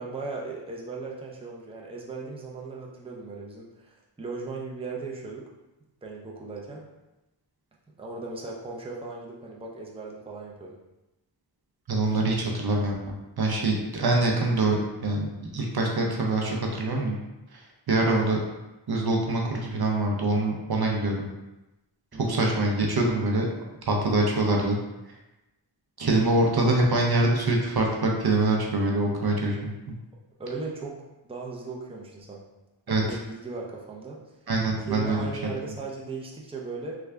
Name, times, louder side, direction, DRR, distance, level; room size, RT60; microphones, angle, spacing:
voice 1, 0.0-5.4 6.0-6.8 8.0-10.8 22.1-22.6 30.4-30.9 31.2-32.4 32.9-34.2 34.9-37.0, right 3 dB, 15° right, -3 dB, 0.6 m, -37 dB
voice 2, 11.9-17.2 17.5-17.6 17.9-18.4 18.9-21.3 22.2-23.5 23.9-24.8 26.0-29.7 32.9-33.2 34.5-35.2, right 2 dB, 55° right, 0 dB, 0.6 m, -24 dB
3.3 x 2.4 x 3.3 m, 1.0 s
wide cardioid pair, 60°, 45 cm